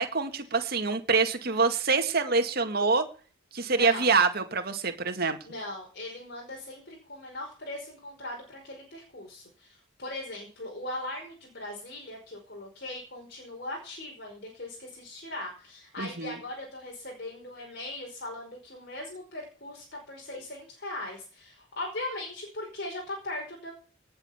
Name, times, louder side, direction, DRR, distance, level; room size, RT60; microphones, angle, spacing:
voice 1, 0.0-3.1 3.5-5.4 16.0-16.4, right 4 dB, 50° right, 6 dB, 2.1 m, -25 dB
voice 2, 3.6-4.1 5.4-23.7, left 1 dB, 50° left, 0 dB, 5.4 m, -39 dB
19.0 x 7.8 x 7.3 m, 0.41 s
head